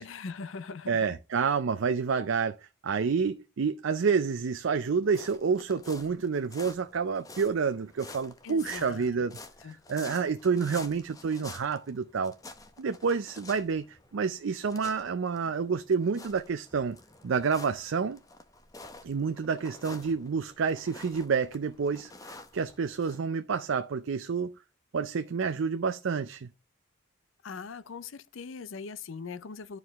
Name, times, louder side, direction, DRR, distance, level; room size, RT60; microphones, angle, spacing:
voice 1, 0.0-1.1 8.4-9.3 9.6-9.8 27.4-29.8, left 5 dB, 75° left, 0.5 m, -41 dB
voice 2, 0.9-9.4 9.9-12.3 12.8-17.0 17.2-18.2 19.0-24.5 24.9-26.5, right 5 dB, 70° right, 0.5 m, -29 dB
sound 1, 5.0-23.2, left 3 dB, 15° left, 0.7 m, -49 dB
11.0 x 4.7 x 3.4 m
head